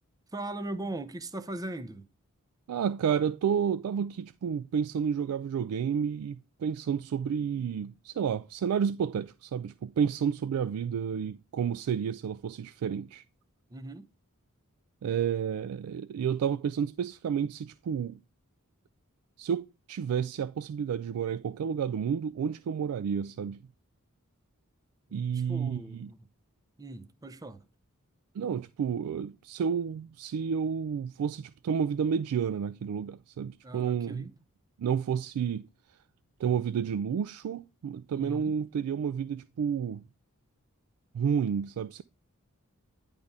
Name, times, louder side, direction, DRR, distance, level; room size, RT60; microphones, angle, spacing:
voice 1, 0.3-2.1 13.7-14.1 25.1-26.3 26.8-27.6 33.6-34.3 38.1-38.5, right 2 dB, 15° right, 0.5 m, -39 dB
voice 2, 2.7-13.2 15.0-18.2 19.4-23.6 25.1-26.1 28.3-34.3 34.8-36.0 36.4-40.0 41.1-42.0, right 7 dB, 80° right, 0.3 m, -30 dB
10.5 x 3.6 x 5.3 m
head